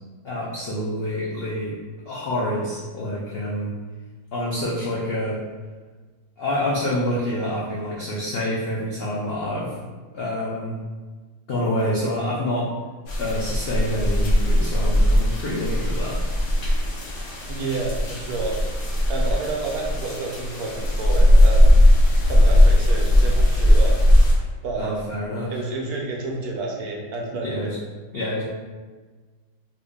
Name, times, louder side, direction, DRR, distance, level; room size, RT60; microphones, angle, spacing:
voice 1, 0.2-1.7 2.1-3.7 4.3-5.4 6.4-9.7 10.1-10.8 11.5-12.6 13.2-16.2 24.8-25.5 27.4-27.8 28.1-28.4, left 1 dB, 80° left, -6 dB, 0.5 m, -27 dB
sound 1, 13.1-24.3, equal, 60° left, 0.9 m, -18 dB
voice 2, 17.5-18.5 19.1-21.8 22.2-24.0 24.6-25.1 25.5-27.7, right 3 dB, 70° right, -1 dB, 1.1 m, -30 dB
2.9 x 2.6 x 3.5 m, 1.4 s
omnidirectional pair, 1.8 m